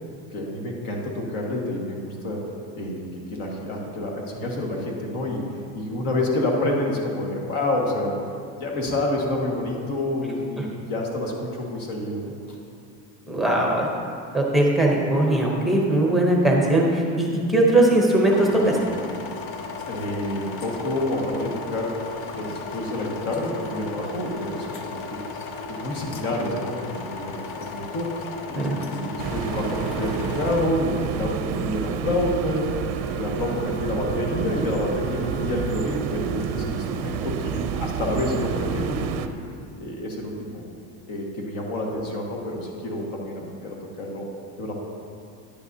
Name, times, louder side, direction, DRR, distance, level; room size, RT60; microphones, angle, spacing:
voice 1, 0.3-2.4 2.7-3.0 3.3-5.4 5.7-8.1 8.6-12.3 19.9-21.9 22.3-25.2 25.7-28.1 28.5-32.7 33.2-39.0 39.8-40.6 41.1-44.3 44.6-44.7, left 1 dB, 65° left, -1 dB, 1.7 m, -28 dB
voice 2, 13.3-13.9 14.3-18.8 28.6-28.8, right 1 dB, ahead, -2 dB, 0.7 m, -20 dB
sound 1, 18.3-30.7, left 4 dB, 40° left, 0.5 m, -36 dB
sound 2, 29.2-39.3, right 7 dB, 45° right, 0.5 m, -29 dB
Wind instrument woodwind instrument, 32.5-37.2, right 3 dB, 90° left, 1.4 m, -37 dB
10.0 x 9.1 x 2.7 m, 2.4 s
cardioid pair, 170°, 36 cm